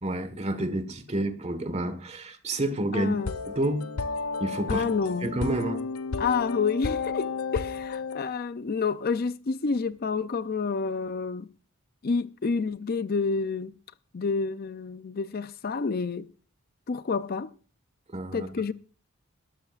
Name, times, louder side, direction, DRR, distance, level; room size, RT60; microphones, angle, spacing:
voice 1, 0.0-3.1 3.5-3.8 4.4-4.8 5.2-5.8 18.1-18.5, right 1 dB, 30° right, 1.5 m, -29 dB
voice 2, 2.9-3.4 4.7-5.3 6.2-11.5 12.0-13.7 14.1-16.3 16.9-17.5 18.3-18.7, left 5 dB, 45° left, 0.5 m, -29 dB
sound 1, 3.2-8.2, left 4 dB, 85° left, 0.7 m, -32 dB
20.5 x 12.5 x 2.5 m
head